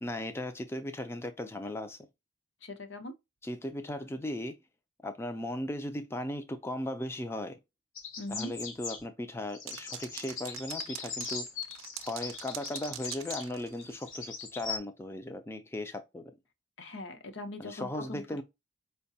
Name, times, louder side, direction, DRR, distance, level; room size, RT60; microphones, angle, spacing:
voice 1, 0.0-2.0 3.4-4.6 5.0-7.6 8.3-11.5 12.0-16.3 17.6-18.4, left 1 dB, 10° left, 0.3 m, -37 dB
voice 2, 2.6-3.1 8.2-8.5 16.8-18.4, left 1 dB, 60° left, 0.7 m, -41 dB
sound 1, 8.0-9.0 9.5-14.8, left 4 dB, 85° left, 1.1 m, -40 dB
sound 2, 9.7-14.2, right 12 dB, 90° right, 0.5 m, -44 dB
4.6 x 2.2 x 2.6 m
head